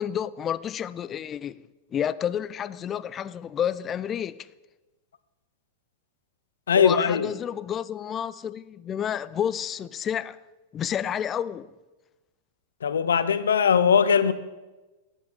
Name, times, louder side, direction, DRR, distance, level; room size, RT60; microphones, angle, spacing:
voice 1, 0.0-1.6 1.9-4.5 6.8-10.4 10.7-11.7, left 9 dB, 25° left, 0.3 m, -30 dB
voice 2, 6.7-7.3 12.8-14.3, left 7 dB, 90° left, 0.5 m, -20 dB
10.0 x 8.0 x 3.7 m
hypercardioid pair, 120°, 0 cm